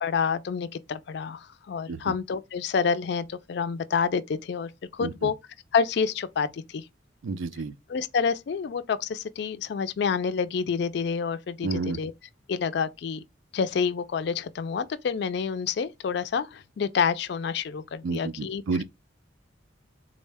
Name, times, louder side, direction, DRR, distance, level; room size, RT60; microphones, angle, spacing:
voice 1, 0.0-5.4 5.7-6.9 7.9-12.1 12.5-13.2 13.5-18.6, left 6 dB, 60° left, 0.3 m, -28 dB
voice 2, 5.0-5.3 7.2-7.7 11.6-12.0 18.0-18.8, right 4 dB, 85° right, 0.4 m, -30 dB
3.7 x 2.1 x 3.3 m
head